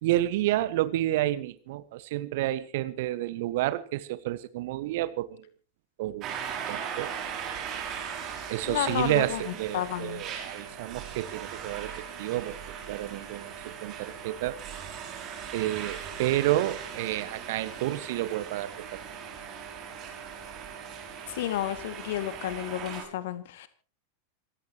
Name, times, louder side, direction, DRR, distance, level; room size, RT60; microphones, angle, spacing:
voice 1, 0.0-5.4 6.0-6.4 6.7-7.1 8.5-14.6 15.5-19.0, right 15 dB, 50° right, 16 dB, 1.4 m, -30 dB
sound 1, 6.2-23.0, right 7 dB, 35° right, 5.9 m, -39 dB
voice 2, 8.6-9.4 9.7-10.2 21.4-23.7, left 12 dB, 55° left, 12 dB, 2.1 m, -31 dB
27.0 x 16.5 x 3.0 m, 0.38 s
figure-of-eight pair, 90°, 0 cm